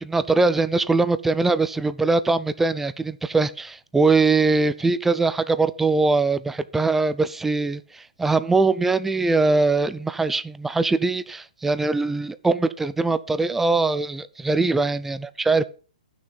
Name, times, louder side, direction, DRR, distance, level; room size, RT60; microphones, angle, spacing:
voice 1, 0.0-15.7, right 3 dB, 5° right, 0.5 m, -22 dB
11.5 x 6.4 x 5.5 m
hypercardioid pair, 135°, 4 cm